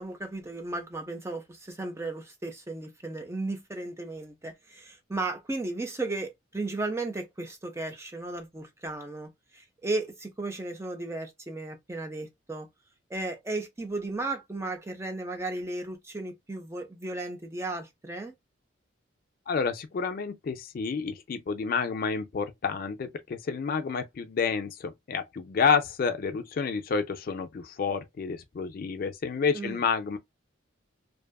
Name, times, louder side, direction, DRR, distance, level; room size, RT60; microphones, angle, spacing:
voice 1, 0.0-12.7 13.1-18.3 29.5-29.8, right 2 dB, 15° right, 0.5 m, -35 dB
voice 2, 19.5-30.2, left 5 dB, 45° left, 0.3 m, -29 dB
2.6 x 2.3 x 2.2 m
head